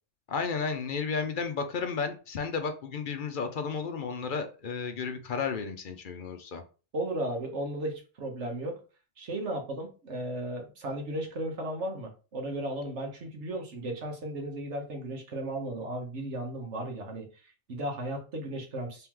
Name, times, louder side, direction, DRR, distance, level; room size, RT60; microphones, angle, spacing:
voice 1, 0.3-6.6, left 5 dB, 55° left, 0.7 m, -33 dB
voice 2, 6.9-8.8 9.2-19.1, right 1 dB, 85° right, 1.4 m, -35 dB
3.4 x 3.0 x 3.6 m
omnidirectional pair, 1.2 m